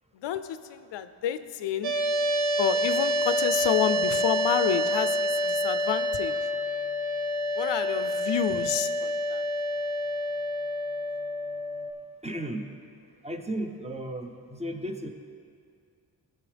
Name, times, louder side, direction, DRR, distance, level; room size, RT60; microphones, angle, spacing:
voice 1, 0.2-1.9 2.6-6.3 7.6-9.4, left 10 dB, 90° left, 12 dB, 0.5 m, -29 dB
sound 1, 1.8-11.9, equal, 65° right, 0.7 m, -28 dB
voice 2, 12.2-12.7 13.2-15.1, right 1 dB, 15° right, 4 dB, 0.6 m, -34 dB
16.0 x 5.6 x 3.4 m, 2.3 s
wide cardioid pair, 115°, 41 cm